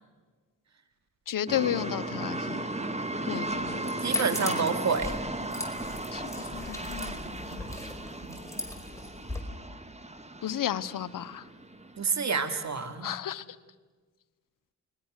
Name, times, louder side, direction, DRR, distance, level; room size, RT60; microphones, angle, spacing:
voice 1, 1.3-2.6 3.2-3.8 6.1-7.6 10.4-11.5 13.0-13.4, left 10 dB, 60° left, 15 dB, 1.1 m, -33 dB
sound 1, 1.5-12.0, right 2 dB, 20° right, 2.3 m, -36 dB
sound 2, 3.5-9.4, left 2 dB, 10° left, 5.2 m, -38 dB
voice 2, 4.0-5.2 8.2-8.4 12.0-13.1, right 5 dB, 50° right, 8 dB, 2.5 m, -28 dB
29.5 x 21.0 x 6.6 m, 1.4 s
supercardioid pair, 50°, 36 cm